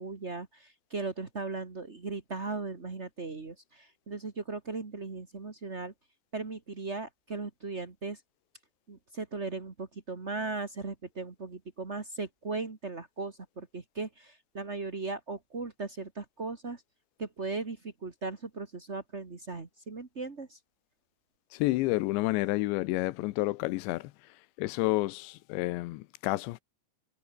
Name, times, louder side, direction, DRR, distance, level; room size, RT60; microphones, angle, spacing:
voice 1, 0.0-5.9 6.3-8.2 8.9-16.8 17.2-20.6, right 3 dB, 55° right, 0.7 m, -38 dB
voice 2, 21.6-24.1 24.6-26.6, left 20 dB, 90° left, 3.1 m, -29 dB
omnidirectional pair, 5.0 m